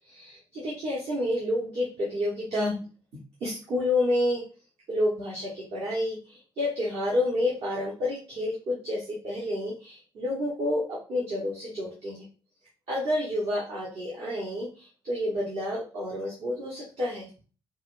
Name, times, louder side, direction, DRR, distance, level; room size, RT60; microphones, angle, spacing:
voice 1, 0.1-2.7 3.4-4.4 4.9-12.3 12.9-17.3, left 1 dB, 55° right, -6 dB, 1.1 m, -29 dB
4.1 x 2.2 x 2.5 m, 0.35 s
figure-of-eight pair, 45°, 13 cm